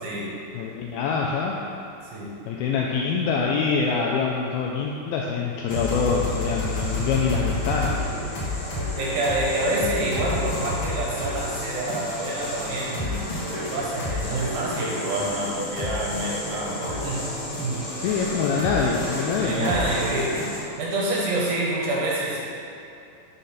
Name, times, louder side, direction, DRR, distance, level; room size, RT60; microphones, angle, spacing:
voice 1, 0.0-0.5 2.0-2.4 8.1-8.4 9.0-17.3 17.6-18.2 19.4-20.5 20.8-22.4, right 2 dB, 75° right, -5 dB, 2.7 m, -27 dB
voice 2, 0.6-1.6 2.5-8.1 18.0-19.8, left 5 dB, 85° left, -2 dB, 2.2 m, -25 dB
sound 1, 5.7-20.6, left 1 dB, 65° left, 1.2 m, -30 dB
6.2 x 3.9 x 5.7 m, 2.7 s
omnidirectional pair, 4.8 m